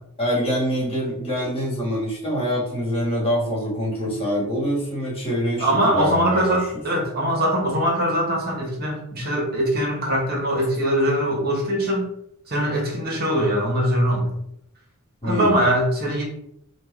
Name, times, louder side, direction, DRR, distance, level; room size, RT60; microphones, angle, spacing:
voice 1, 0.2-6.6 15.2-15.6, equal, 25° left, -4 dB, 1.5 m, -25 dB
voice 2, 5.6-12.1 12.5-14.3 15.2-16.2, equal, 45° right, 0 dB, 1.1 m, -22 dB
4.4 x 2.4 x 4.5 m, 0.74 s
head